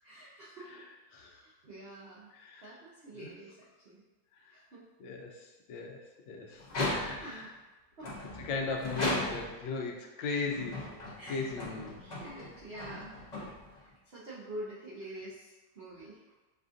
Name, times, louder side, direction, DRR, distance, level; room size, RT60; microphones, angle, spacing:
voice 1, 0.0-0.9 1.1-2.3 2.6-3.6 3.8-4.0 4.5-4.8 6.5-7.5 8.0-8.1 11.2-11.5 12.0-16.2, right 1 dB, 80° right, -7 dB, 0.5 m, -47 dB
voice 2, 2.3-2.6 3.2-3.3 5.0-5.3 5.7-6.0 6.3-6.6 7.0-7.5 8.4-12.0, left 4 dB, 85° left, 2 dB, 1.3 m, -37 dB
sound 1, 6.6-7.4 8.0-9.7 10.4-13.9, left 2 dB, 40° left, 0.6 m, -37 dB
5.9 x 2.5 x 2.5 m, 1.2 s
omnidirectional pair, 2.0 m